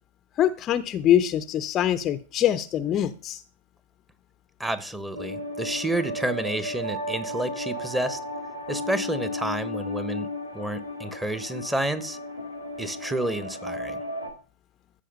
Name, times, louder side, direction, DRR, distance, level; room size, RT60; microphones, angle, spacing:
voice 1, 0.4-3.4, left 11 dB, 30° left, 0.5 m, -23 dB
voice 2, 4.6-8.2 8.7-10.3 10.5-12.2 12.8-14.0, right 1 dB, 10° right, 1.0 m, -30 dB
sound 1, 5.1-14.3, left 1 dB, 90° right, 1.8 m, -34 dB
14.5 x 5.3 x 5.3 m
figure-of-eight pair, 90°, 0 cm